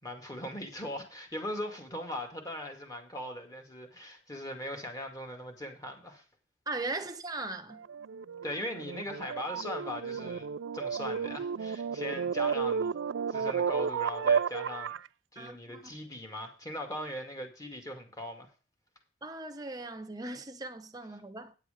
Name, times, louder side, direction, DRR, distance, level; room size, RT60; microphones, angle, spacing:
voice 1, 0.0-6.2 8.4-10.5 10.7-12.9 13.3-14.9 15.3-18.5, left 1 dB, 20° left, 2.2 m, -39 dB
voice 2, 6.7-7.8 13.4-13.5 15.4-15.9 19.2-21.6, right 2 dB, 20° right, 1.1 m, -39 dB
sound 1, 7.7-15.1, right 6 dB, 90° right, 0.4 m, -32 dB
9.7 x 8.1 x 5.1 m
head